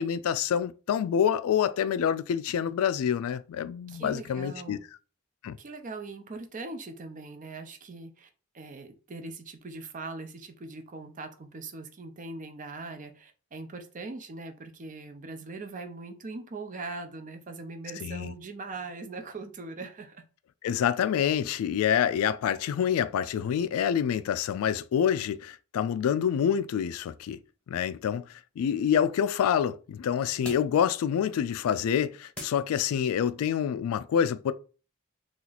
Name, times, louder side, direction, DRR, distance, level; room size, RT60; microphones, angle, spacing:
voice 1, 0.0-4.8 5.4-5.6 18.0-18.3 20.6-27.4 27.7-28.2 28.6-34.5, left 8 dB, 80° left, 0.3 m, -27 dB
voice 2, 3.9-4.8 5.6-8.3 8.5-20.2, right 3 dB, 35° right, 0.5 m, -41 dB
sound 1, 27.2-33.2, left 1 dB, 5° left, 1.0 m, -51 dB
2.9 x 2.4 x 3.9 m
head